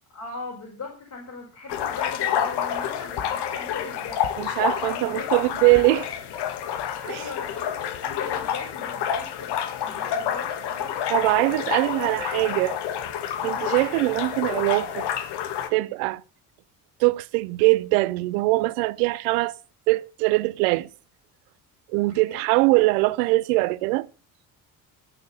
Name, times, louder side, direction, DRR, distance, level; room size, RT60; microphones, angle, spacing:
voice 1, 0.1-5.8 7.0-12.2 13.4-13.6 21.9-22.5, left 4 dB, 45° left, 5.7 m, -40 dB
sound 1, 1.7-15.7, left 9 dB, 70° left, 1.7 m, -29 dB
voice 2, 4.4-6.0 7.1-7.2 11.1-12.8 13.4-15.1 15.7-16.2 17.0-19.5 19.9-20.9 21.9-24.1, right 22 dB, 85° right, 0.7 m, -22 dB
13.0 x 6.7 x 6.9 m
supercardioid pair, 65°, 42 cm